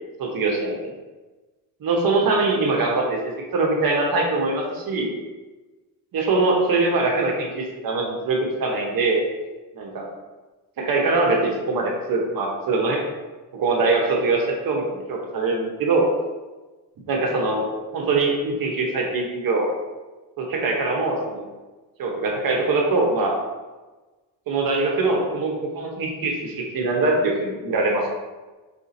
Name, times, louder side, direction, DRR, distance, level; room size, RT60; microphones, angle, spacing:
voice 1, 0.2-0.9 1.8-3.2 3.5-5.1 6.1-9.2 9.7-10.1 10.8-13.0 13.5-16.1 17.1-17.7 17.9-19.7 20.4-21.4 22.0-23.3 24.5-28.1, right 3 dB, 50° right, 0 dB, 0.9 m, -22 dB
5.0 x 2.7 x 2.6 m, 1.2 s
cardioid pair, 110°, 44 cm